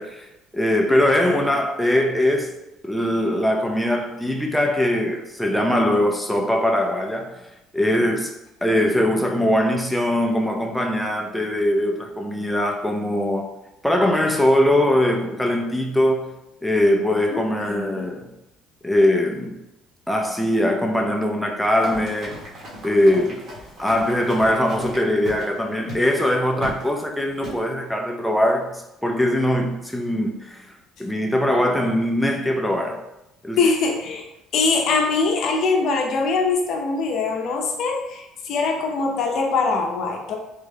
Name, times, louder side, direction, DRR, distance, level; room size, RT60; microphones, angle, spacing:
voice 1, 0.0-2.6 2.8-7.4 7.7-8.3 8.6-13.5 13.8-16.3 16.6-18.3 18.8-19.5 20.1-22.4 22.8-23.4 23.8-30.7 31.0-33.0 33.4-33.6, left 1 dB, ahead, 0.3 m, -21 dB
voice 2, 0.9-1.4 17.3-18.1 33.6-34.2 34.5-40.3, left 4 dB, 60° left, 0.6 m, -23 dB
Run, 21.6-25.5 25.9-26.1 26.6-26.9 27.4-27.6, equal, 50° right, 1.2 m, -36 dB
3.6 x 2.1 x 3.3 m
cardioid pair, 115°, 0 cm